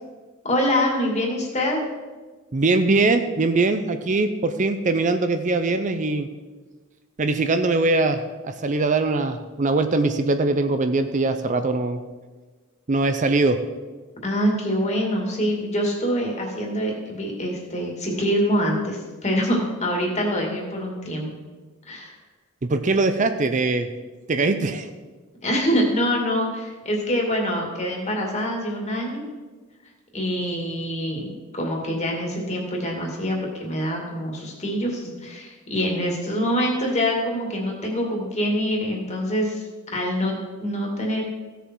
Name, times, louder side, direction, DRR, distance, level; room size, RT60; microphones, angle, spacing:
voice 1, 0.4-1.8 14.2-21.3 21.9-22.1 25.4-29.2 30.1-31.3 31.5-39.6 39.9-41.2, equal, 35° left, 0 dB, 2.4 m, -25 dB
voice 2, 2.5-6.3 7.2-12.0 12.9-13.6 22.6-23.9 24.3-24.9, right 3 dB, 35° right, 8 dB, 0.5 m, -22 dB
16.0 x 6.8 x 4.6 m, 1.3 s
head